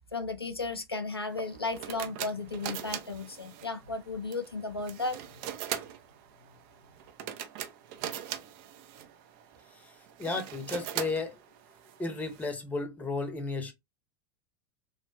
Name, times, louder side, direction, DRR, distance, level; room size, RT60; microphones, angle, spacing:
voice 1, 0.1-5.2, left 3 dB, 90° left, 0.4 m, -34 dB
sound 1, 1.3-12.5, right 10 dB, 45° right, 0.4 m, -41 dB
voice 2, 10.2-11.4 12.0-13.7, left 3 dB, 10° left, 0.7 m, -33 dB
3.3 x 2.1 x 2.5 m
figure-of-eight pair, 85°, 13 cm